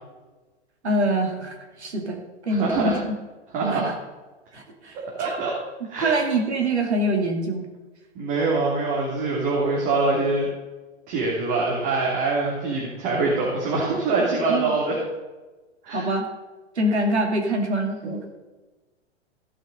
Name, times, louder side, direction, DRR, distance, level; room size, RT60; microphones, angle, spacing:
voice 1, 0.8-2.2 2.4-2.9 3.7-3.9 4.5-5.3 6.0-7.7 14.5-14.7 15.9-16.3 16.8-18.2, right 1 dB, 80° right, 3 dB, 2.3 m, -25 dB
voice 2, 2.5-3.0 3.5-3.9 5.2-5.5 5.9-6.2 8.1-10.5 11.1-15.0 15.8-16.1, right 3 dB, 50° right, -4 dB, 3.0 m, -24 dB
15.5 x 6.1 x 5.2 m, 1.2 s
hypercardioid pair, 105°, 33 cm